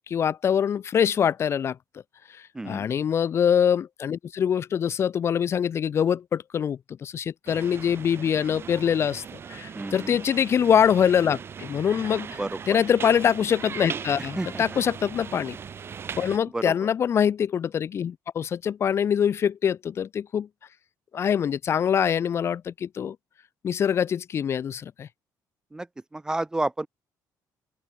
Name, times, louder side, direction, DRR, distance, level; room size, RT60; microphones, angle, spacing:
voice 1, 0.1-1.8 2.3-9.2 9.5-12.3 12.7-15.6 16.2-20.5 21.1-23.2 23.6-25.1, left 8 dB, 35° left, 0.7 m, -24 dB
voice 2, 2.5-2.8 9.7-10.1 12.4-12.5 14.4-14.6 16.5-16.7 25.7-25.9 26.1-26.9, right 2 dB, 10° right, 0.6 m, -30 dB
sound 1, 7.5-16.4, right 7 dB, 35° right, 2.1 m, -39 dB
open air
cardioid pair, 170°, 7 cm